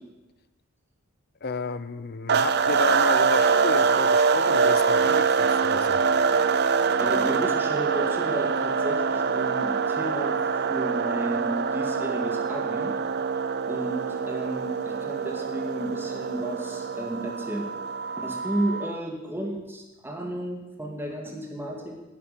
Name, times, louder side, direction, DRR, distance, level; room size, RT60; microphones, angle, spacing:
voice 1, 1.4-6.0, left 3 dB, 45° left, 13 dB, 0.7 m, -32 dB
sound 1, 2.3-19.0, right 5 dB, 50° right, 0.5 m, -24 dB
voice 2, 7.0-10.4 10.7-12.9 13.7-17.7 18.2-21.9, right 1 dB, 10° right, 0 dB, 2.0 m, -32 dB
10.5 x 7.7 x 9.4 m, 1.1 s
head